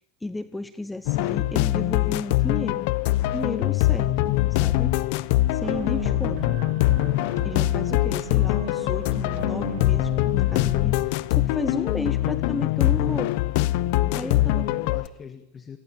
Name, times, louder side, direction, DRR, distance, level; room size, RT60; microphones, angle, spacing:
voice 1, 0.2-2.9 3.2-4.9 5.5-6.6 7.4-13.3 14.1-14.7, left 2 dB, 5° left, 12 dB, 0.8 m, -33 dB
sound 1, 1.1-15.1, left 16 dB, 65° left, 0.9 m, -23 dB
sound 2, 5.6-10.8, right 18 dB, 65° right, 1.2 m, -38 dB
voice 2, 14.0-15.8, left 6 dB, 25° left, 9 dB, 1.5 m, -40 dB
28.5 x 20.5 x 7.4 m, 0.90 s
supercardioid pair, 135°, 0 cm